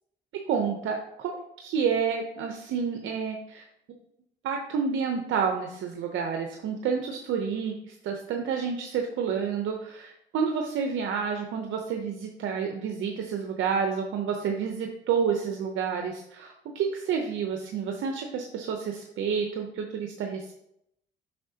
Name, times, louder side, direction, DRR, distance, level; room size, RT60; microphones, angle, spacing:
voice 1, 0.5-1.3 1.6-3.6 4.4-20.5, right 6 dB, 80° right, 3 dB, 0.7 m, -29 dB
7.6 x 5.6 x 2.8 m, 0.78 s
cardioid pair, 90°, 20 cm